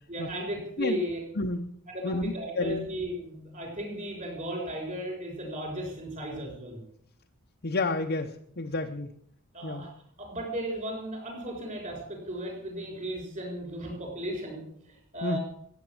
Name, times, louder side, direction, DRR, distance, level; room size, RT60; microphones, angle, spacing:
voice 1, 0.1-1.2 1.9-6.8 9.5-9.9 10.2-15.4, equal, 35° right, 1 dB, 6.6 m, -35 dB
voice 2, 1.4-1.7 2.0-2.9 7.6-9.1 9.6-9.8 15.2-15.4, left 2 dB, 45° left, 2 dB, 0.9 m, -30 dB
15.0 x 9.1 x 7.7 m, 0.67 s
head